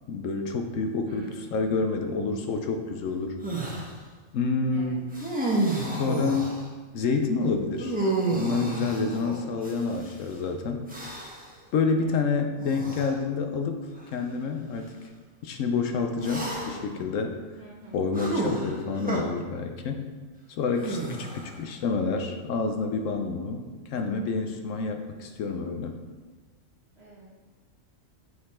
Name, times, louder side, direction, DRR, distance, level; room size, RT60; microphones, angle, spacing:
voice 1, 0.1-3.4 4.3-5.0 5.9-6.5 6.9-8.0 8.3-10.9 11.7-14.9 15.4-17.4 17.9-20.0 20.5-26.0, left 4 dB, 70° left, 5 dB, 1.0 m, -28 dB
voice 2, 1.0-1.7 4.7-5.0 12.0-12.2 16.3-16.7 17.6-18.0 21.2-21.5 27.0-27.3, right 2 dB, 55° right, -5 dB, 1.3 m, -48 dB
sound 1, 3.4-3.9 5.1-6.7 7.8-10.1 10.9-11.5 12.6-13.1 14.0-14.1 16.2-16.9 18.1-19.2 20.8-21.6, right 2 dB, 5° right, 0.9 m, -30 dB
7.7 x 4.1 x 4.2 m, 1.3 s
omnidirectional pair, 1.4 m